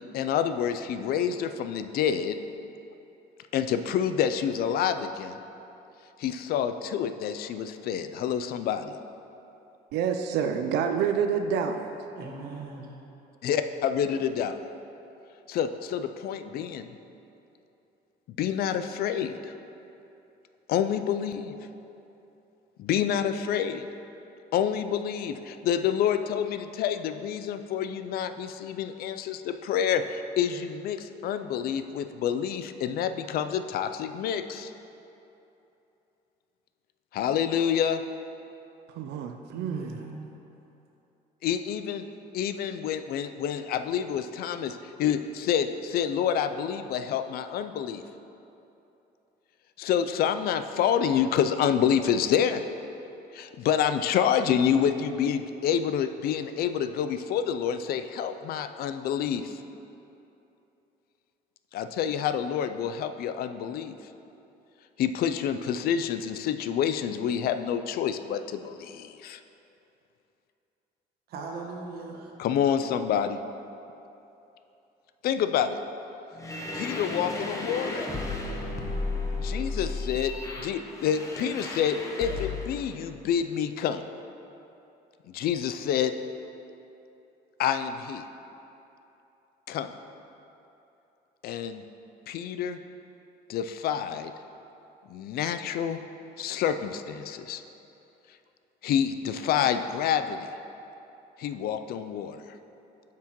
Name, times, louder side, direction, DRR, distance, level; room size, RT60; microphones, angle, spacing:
voice 1, 0.1-2.4 3.5-5.4 6.2-9.0 13.4-14.6 15.5-16.9 18.4-19.5 20.7-21.5 22.8-23.9 24.5-34.7 37.1-38.0 41.4-42.0 42.3-48.0 49.8-52.6 53.3-59.6 61.7-64.0 65.0-69.4 72.4-73.4 75.2-75.8 76.7-78.0 79.4-80.3 80.6-84.0 85.3-86.1 87.6-88.2 89.7-89.9 91.4-91.8 92.3-92.8 93.5-94.3 95.1-96.0 96.4-97.6 98.8-100.5 101.4-102.4, left 8 dB, 65° left, 9 dB, 0.4 m, -28 dB
voice 2, 9.9-11.9 38.9-40.0, right 7 dB, 85° right, 6 dB, 0.4 m, -28 dB
voice 3, 12.2-12.9 39.5-40.3 71.3-72.3, right 3 dB, 65° right, -1 dB, 1.3 m, -39 dB
sound 1, 76.4-82.8, left 3 dB, 20° left, 0.9 m, -33 dB
9.7 x 5.9 x 3.0 m, 2.9 s
cardioid pair, 110°, 17 cm